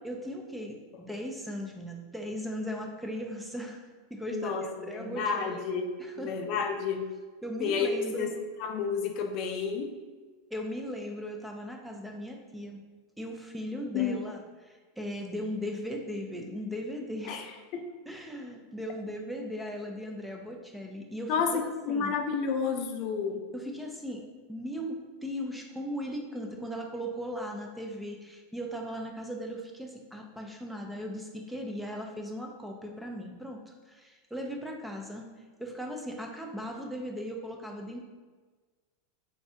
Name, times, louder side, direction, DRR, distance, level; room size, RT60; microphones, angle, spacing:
voice 1, 0.0-3.8 4.1-5.6 6.0-6.3 7.4-8.3 10.5-12.8 13.2-17.4 18.1-22.1 23.5-24.2 24.5-35.3 35.6-38.0, equal, 5° right, 1 dB, 0.5 m, -38 dB
voice 2, 4.3-7.1 7.6-8.3 8.6-9.9 13.9-14.3 17.3-17.4 17.7-17.9 21.3-23.4, left 5 dB, 50° left, 4 dB, 0.4 m, -31 dB
3.6 x 3.1 x 2.7 m, 1.4 s
hypercardioid pair, 115°, 0 cm